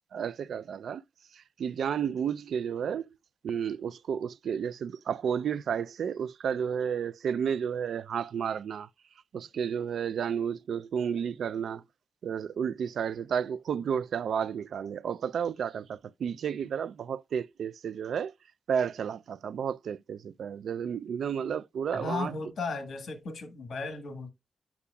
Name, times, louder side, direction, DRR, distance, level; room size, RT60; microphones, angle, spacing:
voice 1, 0.1-1.0 1.3-3.1 3.4-8.9 9.3-11.8 12.2-18.3 18.7-22.3, right 7 dB, 90° right, 0.3 m, -32 dB
voice 2, 21.9-24.3, left 3 dB, 65° left, 1.3 m, -35 dB
8.4 x 5.8 x 2.3 m
wide cardioid pair, 160°, 0 cm